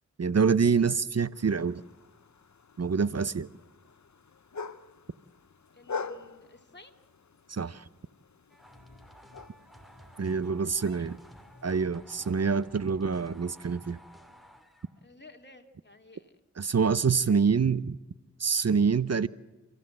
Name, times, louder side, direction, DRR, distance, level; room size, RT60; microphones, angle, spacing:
voice 1, 0.2-1.8 2.8-3.5 7.5-7.8 10.2-11.2 11.6-14.0 16.6-18.0 18.4-19.3, right 5 dB, 60° right, 0.7 m, -26 dB
sound 1, 1.3-11.9, left 4 dB, 75° left, 0.9 m, -45 dB
voice 2, 5.7-7.0 10.6-11.1 15.0-16.4 17.2-17.4, left 3 dB, 35° left, 2.6 m, -53 dB
sound 2, 8.5-15.0, equal, ahead, 2.6 m, -53 dB
29.5 x 15.5 x 7.7 m
wide cardioid pair, 45°, 29 cm